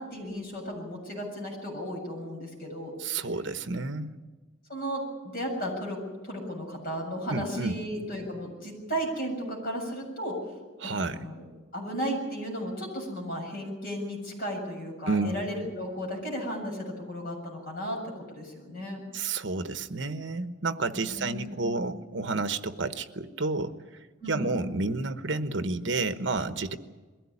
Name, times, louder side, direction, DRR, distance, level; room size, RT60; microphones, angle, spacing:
voice 1, 0.0-2.9 4.7-10.4 11.1-11.4 11.7-19.0 20.9-21.8 24.2-24.5, equal, 45° left, 0 dB, 7.5 m, -34 dB
voice 2, 3.0-4.1 7.3-7.7 10.8-11.2 15.1-15.4 19.1-23.7 24.3-26.8, right 3 dB, 65° right, 10 dB, 1.1 m, -30 dB
22.0 x 16.0 x 9.8 m, 1.3 s
head